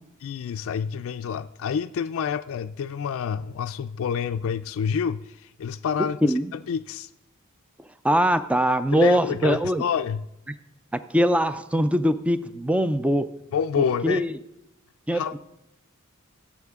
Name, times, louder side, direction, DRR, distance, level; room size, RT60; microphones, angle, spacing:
voice 1, 0.2-7.1 8.9-10.3 13.5-14.2 15.1-15.3, left 7 dB, 65° left, 0.3 m, -28 dB
voice 2, 6.2-6.5 8.0-9.8 11.1-13.3 13.8-14.3 15.1-15.4, equal, 5° right, 0.4 m, -22 dB
16.0 x 7.3 x 3.6 m
head